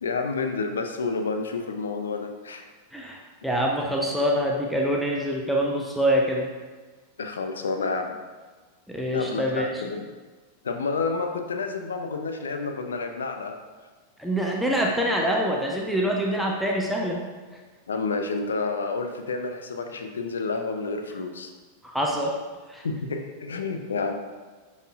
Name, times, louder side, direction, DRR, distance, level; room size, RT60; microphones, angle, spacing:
voice 1, 0.0-2.7 7.2-8.1 9.1-10.0 10.6-13.6 17.9-21.5 22.8-24.1, left 4 dB, 70° left, 5 dB, 0.5 m, -29 dB
voice 2, 2.9-6.5 8.9-9.8 14.2-17.2 21.8-22.4 22.7-22.8, equal, ahead, -2 dB, 0.7 m, -25 dB
10.5 x 4.3 x 2.4 m, 1.4 s
figure-of-eight pair, 90°, 0 cm